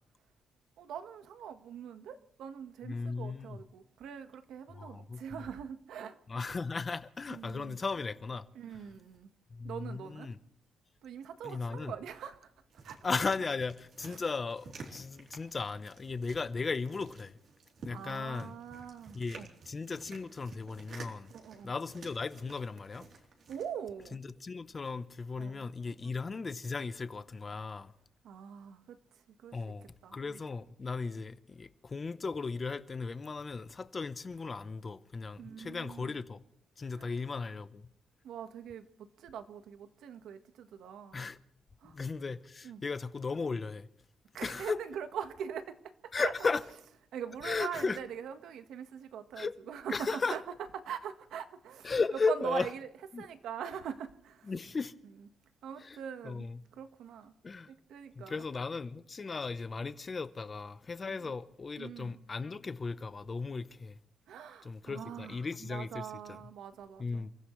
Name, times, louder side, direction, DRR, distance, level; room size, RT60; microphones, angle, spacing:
voice 1, 0.8-6.2 7.3-7.8 8.5-9.3 9.6-10.3 11.0-12.5 12.8-13.0 14.0-14.2 17.9-19.5 21.3-21.7 23.5-24.2 25.4-25.6 26.0-26.1 28.2-29.6 30.0-30.4 35.4-36.2 36.9-37.2 38.2-41.3 41.8-42.0 42.6-42.8 44.3-46.3 47.1-50.4 50.8-51.9 52.3-52.9 53.2-54.5 55.6-57.3 57.7-58.4 61.1-61.3 61.8-62.2 64.3-67.3, right 8 dB, 80° right, 1.4 m, -43 dB
voice 2, 2.8-3.6 4.7-5.4 6.3-8.5 9.5-10.4 11.4-11.9 13.0-17.4 17.8-18.5 19.1-21.3 21.6-23.0 24.1-27.9 29.5-36.4 36.8-37.9 41.1-41.4 41.9-43.9 44.4-44.8 46.1-46.6 47.4-48.0 49.4-49.5 49.9-50.3 51.8-52.7 53.1-53.3 54.5-54.9 55.8-56.0 56.2-56.6 57.4-57.7 58.2-64.0 64.6-66.4 67.0-67.3, left 4 dB, 30° left, 0.8 m, -36 dB
sound 1, 12.7-23.7, right 4 dB, 60° right, 3.3 m, -52 dB
29.0 x 15.0 x 3.2 m
cardioid pair, 140°, 0 cm